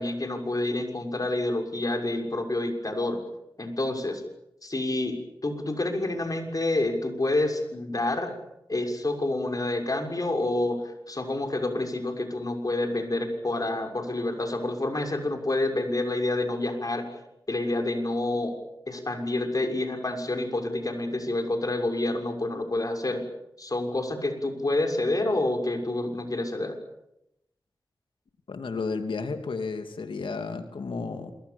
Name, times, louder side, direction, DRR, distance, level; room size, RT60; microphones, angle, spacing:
voice 1, 0.0-3.2 3.6-4.2 4.6-8.3 8.7-17.0 17.5-18.5 18.9-23.2 23.6-26.8, left 2 dB, 45° left, 4 dB, 6.6 m, -28 dB
voice 2, 28.5-31.3, left 4 dB, 85° left, 6 dB, 2.8 m, -32 dB
27.0 x 24.0 x 7.2 m, 0.85 s
cardioid pair, 45°, 8 cm